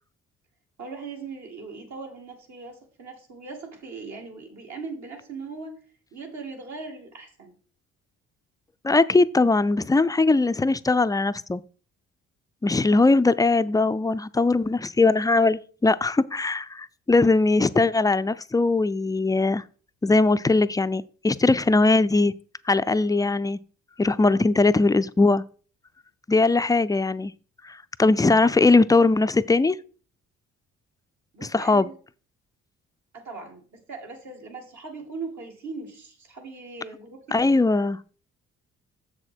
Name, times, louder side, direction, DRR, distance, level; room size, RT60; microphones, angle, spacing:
voice 1, 0.8-5.8 6.1-7.6 31.3-32.0 33.1-37.8, right 4 dB, 65° right, 2.4 m, -39 dB
voice 2, 8.8-11.6 12.6-19.6 20.0-22.3 22.7-23.6 24.0-25.4 26.3-27.3 27.6-29.8 31.4-31.9 37.3-38.0, left 3 dB, 15° left, 0.3 m, -20 dB
7.1 x 6.5 x 4.4 m
cardioid pair, 90°, 30 cm